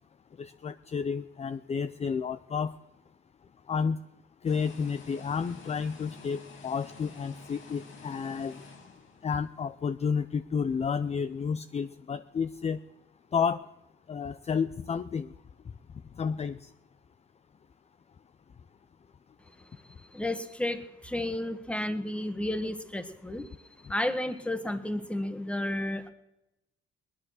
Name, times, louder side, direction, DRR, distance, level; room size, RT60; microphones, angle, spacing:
voice 1, 0.4-2.7 3.7-4.0 4.4-8.6 9.2-12.8 13.3-13.6 14.1-15.3 16.2-16.7, left 6 dB, 35° left, 12 dB, 0.5 m, -31 dB
sound 1, 4.5-9.6, left 4 dB, 75° left, 2.6 m, -49 dB
voice 2, 19.6-23.5 23.9-26.1, left 1 dB, 5° left, 10 dB, 1.4 m, -32 dB
19.0 x 11.0 x 6.4 m, 0.96 s
cardioid pair, 90°, 20 cm